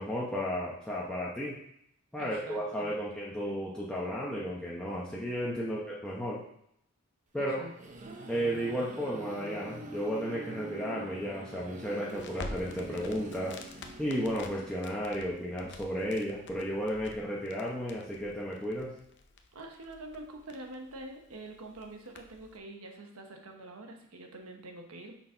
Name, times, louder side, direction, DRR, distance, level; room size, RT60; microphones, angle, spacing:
voice 1, 0.0-1.6 2.1-6.4 7.3-7.7 8.3-13.6 14.0-19.0, equal, 5° left, -6 dB, 0.8 m, -33 dB
voice 2, 2.2-3.0 5.6-5.7 7.3-7.7 19.5-25.1, right 2 dB, 80° right, 3 dB, 1.0 m, -46 dB
sound 1, 7.4-15.2, right 2 dB, 35° right, 0.7 m, -45 dB
Crackle, 12.0-22.6, left 2 dB, 55° left, 0.6 m, -49 dB
6.1 x 4.1 x 4.4 m, 0.73 s
head